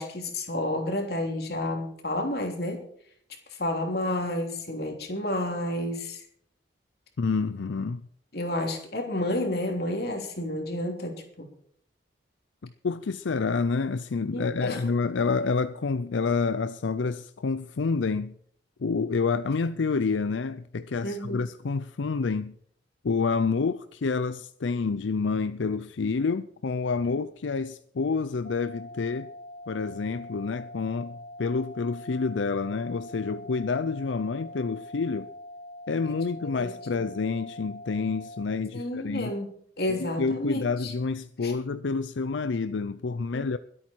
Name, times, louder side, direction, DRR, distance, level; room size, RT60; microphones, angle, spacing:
voice 1, 0.0-2.8 3.5-6.2 8.3-11.5 14.3-14.8 21.0-21.4 36.6-37.0 38.7-39.5 39.8-40.9 41.4-41.5 43.3-43.5, left 1 dB, 55° left, 3.1 m, -30 dB
voice 2, 7.2-8.0 12.6-18.3 18.8-22.5 23.0-29.3 29.7-35.3 35.9-39.3 40.0-43.6, left 4 dB, 85° left, 0.5 m, -28 dB
sound 1, 28.4-38.4, left 1 dB, 40° left, 2.0 m, -44 dB
22.0 x 8.7 x 4.6 m
head